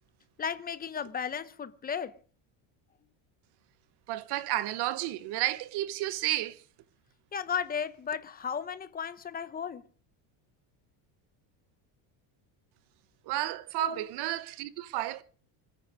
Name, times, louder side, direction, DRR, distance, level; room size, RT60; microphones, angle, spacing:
voice 1, 0.4-2.1 7.3-9.8 13.8-14.1, left 7 dB, 20° left, 0.9 m, -34 dB
voice 2, 4.1-6.6 13.2-15.2, right 15 dB, 55° right, 1.1 m, -32 dB
26.0 x 9.4 x 4.9 m
cardioid pair, 160°, 49 cm